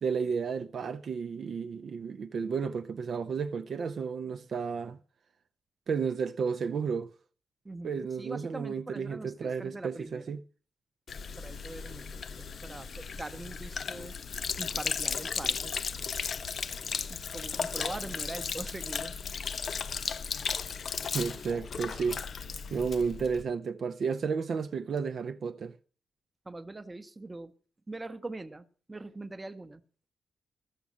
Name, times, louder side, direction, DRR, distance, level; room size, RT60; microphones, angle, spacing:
voice 1, 0.0-5.0 5.9-7.1 7.8-10.4 21.1-25.7, right 5 dB, 50° right, 0.5 m, -32 dB
voice 2, 7.6-10.2 11.4-14.2 14.6-15.8 17.1-19.1 26.5-27.5 27.9-29.8, right 2 dB, 15° right, 0.8 m, -42 dB
Sink (filling or washing), 11.1-23.4, left 6 dB, 45° left, 0.5 m, -35 dB
14.5 x 7.1 x 6.2 m
wide cardioid pair, 165°, 0 cm